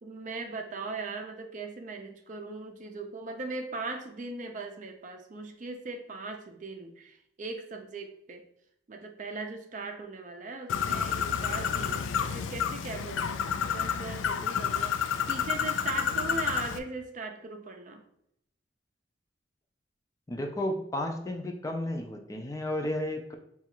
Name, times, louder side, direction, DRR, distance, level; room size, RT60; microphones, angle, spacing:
voice 1, 0.0-8.4 8.9-13.4 13.7-18.0, right 3 dB, 40° right, 5 dB, 0.5 m, -39 dB
Bird, 10.7-16.8, left 7 dB, 85° left, 0.3 m, -30 dB
voice 2, 20.3-23.3, left 1 dB, 20° left, 3 dB, 0.4 m, -33 dB
3.8 x 2.4 x 4.3 m, 0.75 s
head